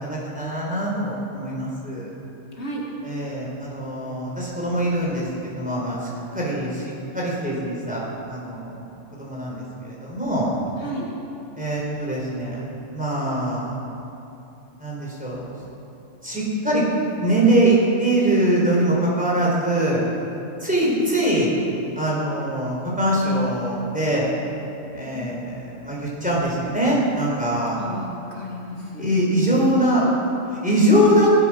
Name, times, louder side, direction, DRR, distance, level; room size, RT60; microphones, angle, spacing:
voice 1, 0.1-2.1 3.0-6.8 7.1-8.7 9.2-9.5 9.8-10.5 11.5-12.6 12.9-13.7 14.8-15.5 16.2-16.8 17.2-20.0 20.6-21.5 22.0-24.3 24.9-27.9 29.0-30.0 30.6-31.3, right 1 dB, 5° right, -5 dB, 4.2 m, -22 dB
voice 2, 2.5-2.9 10.8-11.1 20.8-21.0 25.1-25.4 27.7-29.7, equal, 55° left, -3 dB, 2.1 m, -33 dB
16.5 x 13.0 x 6.3 m, 2.9 s
omnidirectional pair, 1.3 m